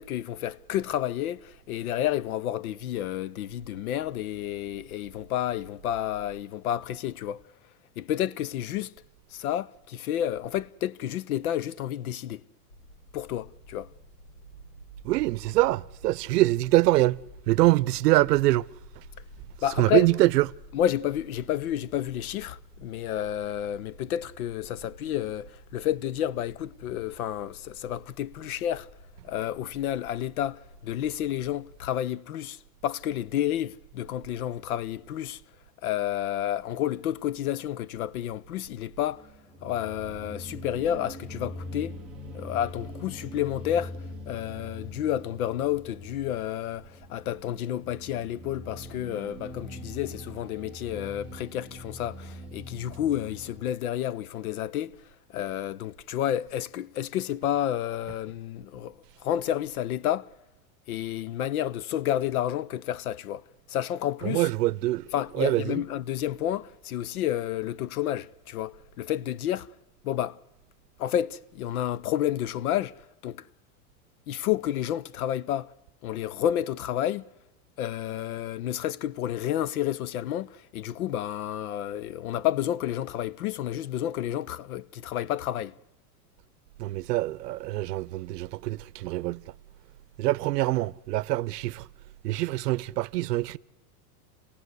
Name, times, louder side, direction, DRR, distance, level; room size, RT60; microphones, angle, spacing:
voice 1, 0.0-7.4 8.0-8.9 9.3-12.4 13.1-13.9 19.6-20.1 20.7-28.9 29.2-35.4 35.8-39.3 39.6-42.0 42.3-44.0 44.3-55.0 55.3-58.9 59.2-60.3 60.9-63.4 63.7-64.5 65.1-69.7 70.0-70.4 71.0-73.4 74.3-75.7 76.0-77.3 77.8-85.8, left 11 dB, 65° left, 0.7 m, -30 dB
sound 1, 12.7-32.0, left 1 dB, 85° left, 7.4 m, -51 dB
voice 2, 15.0-17.2 17.5-18.6 19.8-20.4 64.2-65.1 65.4-65.8 86.8-89.4 90.2-91.8 92.2-93.6, right 17 dB, 90° right, 0.7 m, -24 dB
sound 2, 39.0-53.7, left 1 dB, ahead, 0.7 m, -43 dB
28.0 x 17.5 x 8.1 m
supercardioid pair, 175°, 46 cm